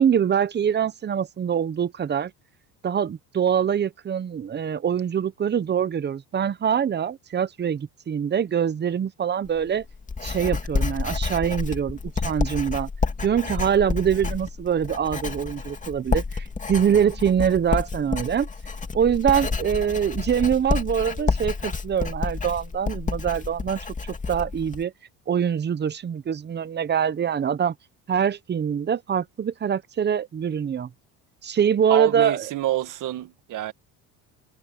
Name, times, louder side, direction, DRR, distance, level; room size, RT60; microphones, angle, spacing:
voice 1, 0.0-2.3 2.8-9.8 10.2-12.9 13.2-18.5 18.9-23.8 24.3-24.9 25.3-27.7 28.1-30.9 31.4-32.5, right 8 dB, 25° right, 0.9 m, -24 dB
Writing, 9.4-24.8, left 4 dB, 20° left, 2.6 m, -29 dB
voice 2, 31.9-33.7, right 13 dB, 50° right, 2.0 m, -27 dB
cardioid pair, 115°, 38 cm